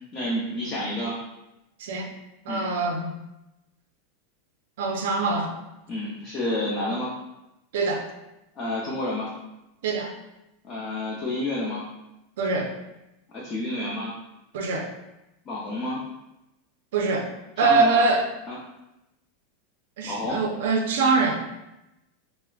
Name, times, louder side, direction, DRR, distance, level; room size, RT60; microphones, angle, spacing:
voice 1, 0.1-1.2 2.5-2.7 5.9-7.1 8.5-9.3 10.6-11.8 13.4-14.1 15.5-16.0 17.6-18.0 18.5-18.6 20.0-20.4, left 1 dB, 30° left, -5 dB, 0.6 m, -29 dB
voice 2, 2.5-3.1 4.8-5.5 7.7-8.1 9.8-10.1 12.4-12.7 14.5-14.9 16.9-17.3 17.6-18.3 20.0-21.4, right 3 dB, 75° right, 1 dB, 0.5 m, -23 dB
4.6 x 2.0 x 2.3 m, 0.93 s
supercardioid pair, 155°, 0 cm